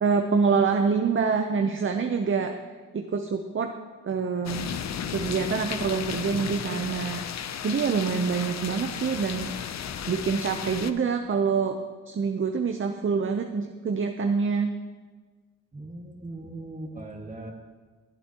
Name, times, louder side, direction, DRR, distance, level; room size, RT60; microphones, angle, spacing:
voice 1, 0.0-2.5 2.9-3.7 4.0-4.7 5.1-7.2 7.6-9.5 10.1-11.8 12.1-14.7, right 5 dB, 40° right, 5 dB, 0.7 m, -26 dB
sound 1, 4.5-10.9, left 8 dB, 55° left, 0.6 m, -34 dB
voice 2, 15.7-17.5, right 2 dB, 25° right, 1 dB, 2.0 m, -39 dB
20.0 x 8.1 x 3.0 m, 1.4 s
cardioid pair, 80°, 31 cm